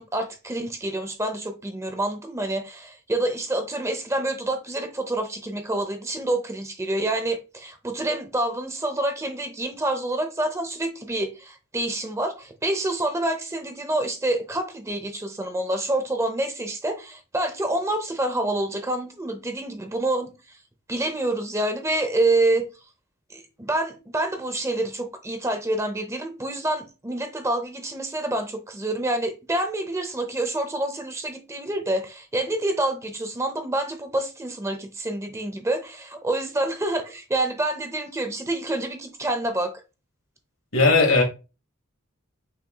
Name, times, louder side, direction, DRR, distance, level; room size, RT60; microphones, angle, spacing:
voice 1, 0.0-20.3 20.9-22.7 23.3-39.7, right 1 dB, 15° right, 0.6 m, -27 dB
voice 2, 40.7-41.2, left 3 dB, 80° left, 1.7 m, -17 dB
5.8 x 3.6 x 2.2 m
head